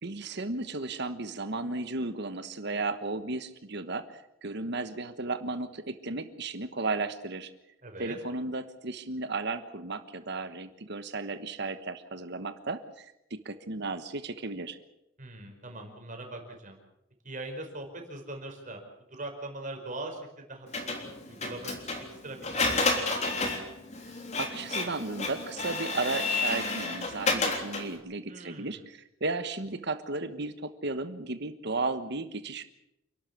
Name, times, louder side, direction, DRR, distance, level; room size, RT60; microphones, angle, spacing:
voice 1, 0.0-7.5 8.0-14.8 24.4-32.6, right 3 dB, 55° right, 10 dB, 1.3 m, -34 dB
voice 2, 7.8-8.2 15.2-16.8 17.2-18.8 19.1-20.9 21.2-22.6 23.0-23.3 28.3-28.8, right 2 dB, 40° right, 3 dB, 5.1 m, -41 dB
Printer, 20.7-28.0, left 3 dB, 35° left, 3.5 m, -31 dB
28.5 x 12.5 x 8.4 m, 0.85 s
head